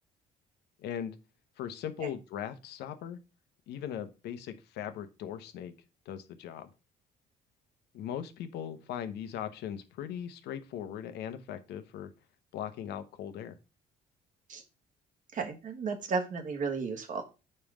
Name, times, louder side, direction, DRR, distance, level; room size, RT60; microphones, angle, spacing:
voice 1, 0.8-1.1 1.6-3.2 3.7-5.7 6.1-6.7 7.9-12.1 12.5-13.6, left 9 dB, 80° left, 10 dB, 0.9 m, -39 dB
voice 2, 15.3-17.3, right 5 dB, 50° right, 6 dB, 1.3 m, -34 dB
5.4 x 4.4 x 4.8 m, 0.29 s
cardioid pair, 110°, 17 cm